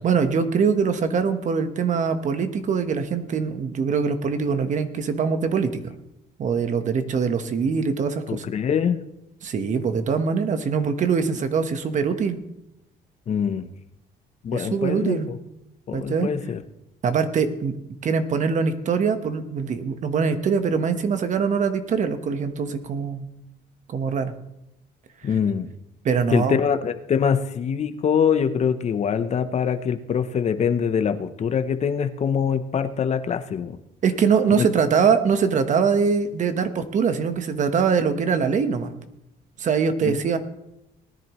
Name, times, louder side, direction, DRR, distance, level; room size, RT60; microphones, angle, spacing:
voice 1, 0.0-5.9 6.4-8.4 9.4-12.4 14.5-15.3 15.9-16.3 17.0-17.7 18.0-23.2 23.9-24.3 26.0-26.6 34.0-38.9 39.6-40.4, right 6 dB, 45° right, 9 dB, 1.2 m, -23 dB
voice 2, 8.3-9.0 13.3-13.7 14.4-15.2 15.9-16.6 25.2-25.7 26.3-33.8 34.6-34.7 40.0-40.4, left 7 dB, 40° left, 10 dB, 0.8 m, -24 dB
19.0 x 10.5 x 3.1 m, 0.88 s
cardioid pair, 110°, 17 cm